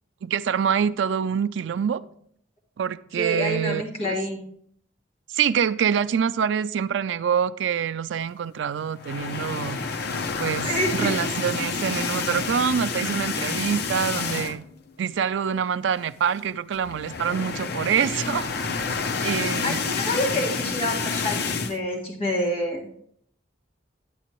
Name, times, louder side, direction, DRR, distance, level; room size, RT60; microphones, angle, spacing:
voice 1, 0.2-2.0 2.8-4.1 5.3-9.8 10.4-14.6 15.0-18.5 19.2-19.8, right 7 dB, 70° right, 0.4 m, -25 dB
voice 2, 3.2-4.4 10.6-11.1 19.6-23.1, equal, 35° left, 1.7 m, -27 dB
sound 1, 9.0-14.8 15.1-15.3 15.6-15.7 16.7-21.8, left 4 dB, 55° left, 0.6 m, -29 dB
9.9 x 8.3 x 3.0 m
head